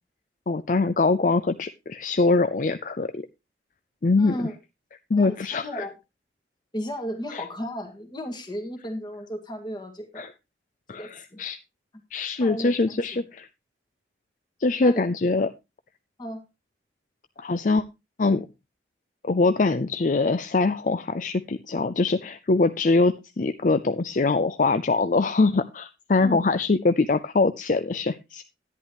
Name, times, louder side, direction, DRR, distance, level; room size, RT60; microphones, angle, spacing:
voice 1, 0.5-3.2 4.0-4.4 5.1-5.9 7.3-7.4 10.2-10.3 10.9-11.6 12.1-13.5 14.6-15.5 17.4-17.8 18.2-18.5 19.2-28.4, left 3 dB, 45° left, 12 dB, 0.5 m, -23 dB
voice 2, 4.2-4.6 5.2-5.9 6.7-10.3 11.0-11.4 12.4-12.7 14.8-15.1 16.2-16.5 26.2-26.4, equal, 25° left, 5 dB, 1.9 m, -34 dB
11.0 x 10.5 x 3.0 m, 0.25 s
head